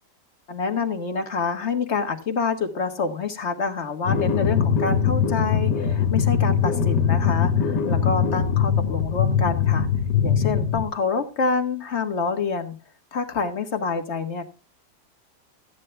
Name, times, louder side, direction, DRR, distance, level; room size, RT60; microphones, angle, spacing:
voice 1, 0.5-9.9 10.2-12.8 13.1-14.4, left 5 dB, 40° left, 6 dB, 1.6 m, -27 dB
sound 1, 4.1-10.8, left 7 dB, 80° left, 1.9 m, -21 dB
14.0 x 9.5 x 3.4 m, 0.32 s
omnidirectional pair, 1.8 m